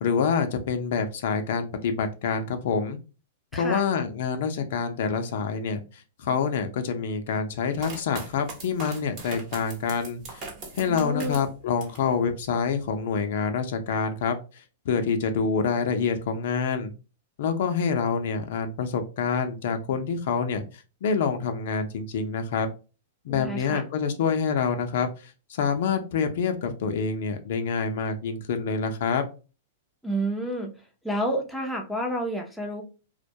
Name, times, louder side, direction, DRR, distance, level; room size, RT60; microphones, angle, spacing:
voice 1, 0.0-3.0 3.5-5.8 6.2-10.5 10.7-14.3 14.9-16.9 17.4-20.6 21.0-22.7 23.3-25.1 25.5-29.2, left 6 dB, 65° left, 7 dB, 0.5 m, -26 dB
voice 2, 3.5-3.8 10.9-11.4 23.3-23.8 30.0-30.7 31.0-32.8, right 1 dB, ahead, 2 dB, 0.5 m, -29 dB
sound 1, 7.8-12.1 12.5-13.2, right 3 dB, 35° right, 0.9 m, -41 dB
2.2 x 2.2 x 2.6 m, 0.32 s
hypercardioid pair, 145°, 0 cm